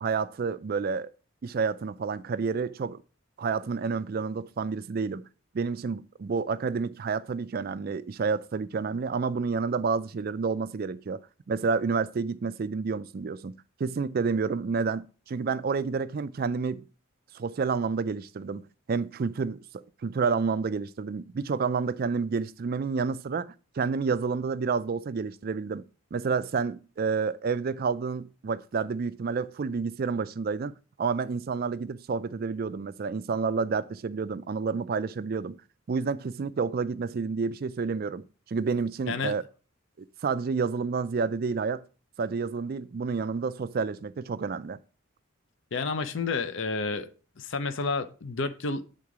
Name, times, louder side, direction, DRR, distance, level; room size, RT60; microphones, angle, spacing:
voice 1, 0.0-1.1 1.4-3.0 3.4-5.2 5.5-11.2 11.5-16.8 17.3-23.5 23.8-25.8 26.1-30.7 31.0-35.6 35.9-39.4 40.0-41.8 42.2-44.8, right 5 dB, 45° right, 0.4 m, -29 dB
voice 2, 45.7-47.1 47.4-48.8, left 4 dB, 60° left, 0.6 m, -30 dB
8.6 x 3.8 x 4.8 m
head